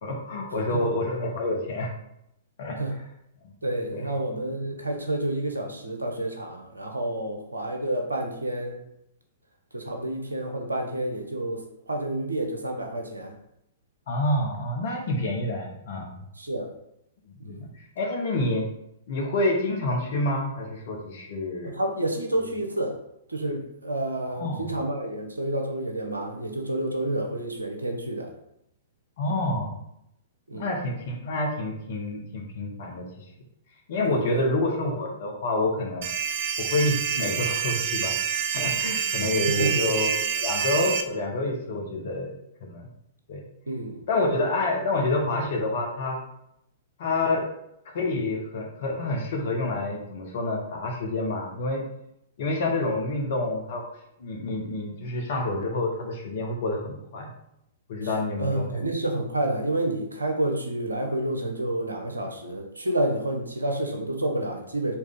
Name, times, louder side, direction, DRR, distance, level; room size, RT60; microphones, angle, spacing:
voice 1, 0.0-1.9 2.6-2.8 3.9-4.0 14.1-16.2 17.3-17.7 18.0-18.6 19.1-21.7 24.3-24.7 29.2-29.8 30.5-33.2 33.9-36.1 36.6-38.2 38.5-42.3 42.6-42.9 43.3-43.4 44.1-46.2 47.0-47.5 47.8-51.8 52.4-53.8 54.2-57.3 57.9-58.9, left 2 dB, 55° left, 1 dB, 1.2 m, -28 dB
voice 2, 3.6-8.8 9.7-13.4 16.4-16.7 17.4-17.6 21.6-22.9 23.3-28.3 30.5-30.7 34.1-34.4 39.5-39.8 43.7-44.0 58.4-64.9, right 1 dB, 80° right, 3 dB, 0.8 m, -29 dB
sound 1, 36.0-41.0, right 7 dB, 55° right, 0.5 m, -27 dB
4.4 x 3.3 x 3.7 m, 0.79 s
figure-of-eight pair, 110°, 0 cm